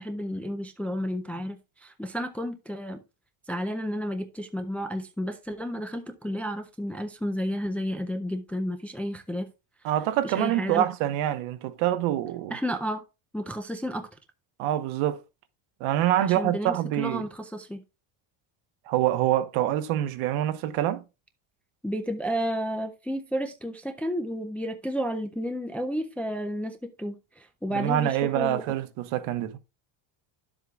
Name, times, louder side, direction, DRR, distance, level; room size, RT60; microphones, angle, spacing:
voice 1, 0.0-3.0 3.5-9.5 10.2-10.8 12.5-13.0 13.3-14.1 16.2-17.8 21.8-28.6, equal, 5° left, 0.4 m, -32 dB
voice 2, 9.8-12.5 14.6-15.2 15.8-17.2 18.9-21.0 27.7-29.6, right 12 dB, 80° right, 1.1 m, -26 dB
10.5 x 7.6 x 2.3 m
cardioid pair, 160°, 49 cm